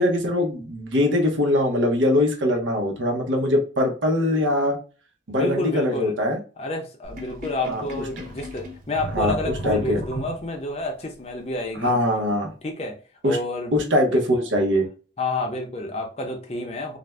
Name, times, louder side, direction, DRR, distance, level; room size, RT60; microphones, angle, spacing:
voice 1, 0.0-4.8 5.3-6.4 7.7-7.8 9.1-9.4 9.6-10.0 11.8-12.5 13.2-13.4 13.7-14.9, left 1 dB, 85° right, 0.8 m, -22 dB
voice 2, 5.4-6.1 6.6-12.0 12.6-12.9 13.2-13.8 14.1-14.3 15.2-17.0, left 2 dB, 35° left, 0.5 m, -29 dB
Sink (filling or washing), 7.0-10.8, right 1 dB, 45° right, 0.5 m, -35 dB
2.5 x 2.1 x 3.2 m
head